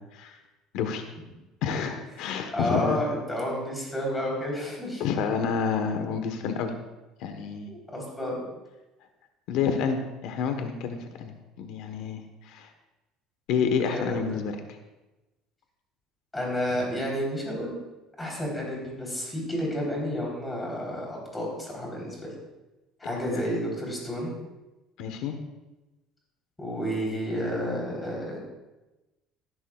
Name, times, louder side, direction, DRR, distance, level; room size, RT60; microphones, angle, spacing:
voice 1, 0.7-1.0 1.6-3.0 5.0-6.7 7.2-7.7 9.5-12.7 13.5-14.6 23.0-23.4 25.0-25.4, left 6 dB, 65° left, 6 dB, 1.1 m, -29 dB
voice 2, 2.2-5.0 7.7-8.4 13.8-14.4 16.3-17.7 18.2-22.3 23.0-24.3 26.6-28.4, equal, 10° left, -2 dB, 3.6 m, -31 dB
17.5 x 11.0 x 2.4 m, 1.1 s
cardioid pair, 145°, 0 cm